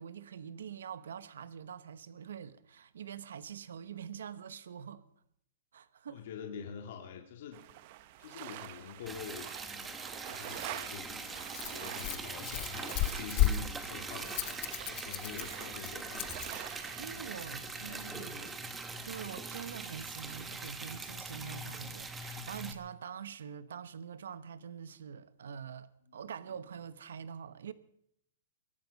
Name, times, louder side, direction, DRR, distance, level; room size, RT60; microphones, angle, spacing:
voice 1, 0.0-5.0 5.7-6.2 17.0-18.5 19.0-27.7, right 8 dB, 85° right, 1.1 m, -45 dB
voice 2, 6.1-7.6 8.2-16.5 17.5-18.6 26.1-26.2, left 6 dB, 50° left, 2.1 m, -46 dB
sound 1, 7.5-17.1, right 14 dB, 35° right, 0.8 m, -47 dB
Liquid, 9.1-22.7, right 3 dB, 10° right, 1.1 m, -42 dB
Rattle, 10.5-16.5, left 13 dB, 30° left, 0.8 m, -35 dB
22.5 x 12.0 x 5.3 m
hypercardioid pair, 175°, 0 cm